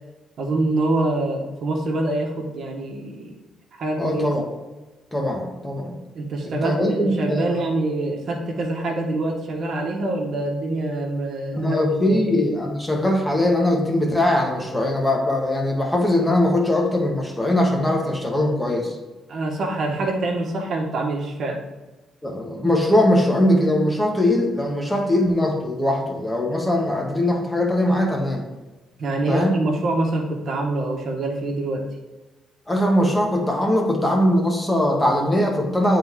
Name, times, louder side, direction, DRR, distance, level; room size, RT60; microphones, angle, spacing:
voice 1, 0.4-3.3 3.8-4.3 6.1-12.3 19.3-21.6 29.0-31.9, right 2 dB, 60° right, 0 dB, 1.3 m, -25 dB
voice 2, 4.0-4.4 5.1-5.9 6.4-7.6 11.5-19.0 22.2-28.5 29.3-29.6 32.7-36.0, left 1 dB, 10° left, 1 dB, 1.3 m, -21 dB
8.0 x 3.9 x 3.7 m, 1.2 s
cardioid pair, 90°, 0 cm